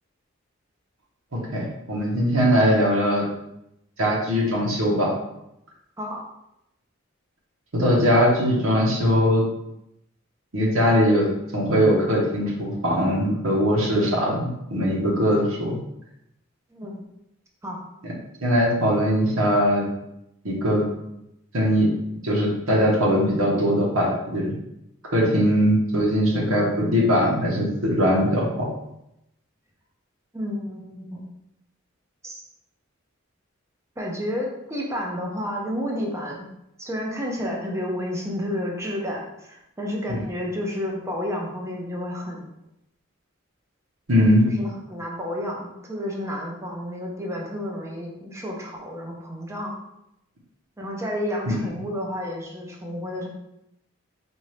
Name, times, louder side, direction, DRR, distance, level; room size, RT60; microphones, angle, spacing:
voice 1, 1.3-3.3 4.0-5.1 7.7-9.4 10.5-15.8 18.4-19.9 20.4-20.8 21.5-21.9 22.2-24.5 25.1-28.7 40.1-40.2 44.1-44.5 51.5-51.6, equal, 85° right, -4 dB, 1.1 m, -21 dB
voice 2, 16.7-17.0 17.6-17.8 30.3-31.2 32.2-32.4 34.0-36.5 36.8-42.5 44.2-49.8 50.8-53.3, equal, 15° right, -1 dB, 0.7 m, -31 dB
4.4 x 2.7 x 3.2 m, 0.83 s
head